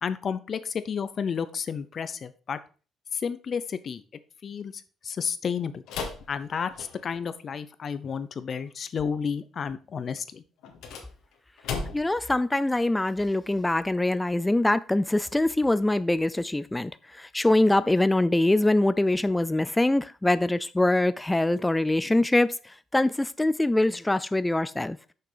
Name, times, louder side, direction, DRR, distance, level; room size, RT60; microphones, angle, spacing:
voice 1, 0.0-2.6 3.1-4.0 4.4-5.8 6.3-10.4, left 6 dB, 40° left, 0.7 m, -31 dB
sound 1, 5.9-7.3 10.6-12.2, left 5 dB, 85° left, 1.8 m, -36 dB
voice 2, 11.9-25.0, left 1 dB, 10° left, 0.3 m, -24 dB
6.8 x 5.9 x 5.0 m
cardioid pair, 135°, 0 cm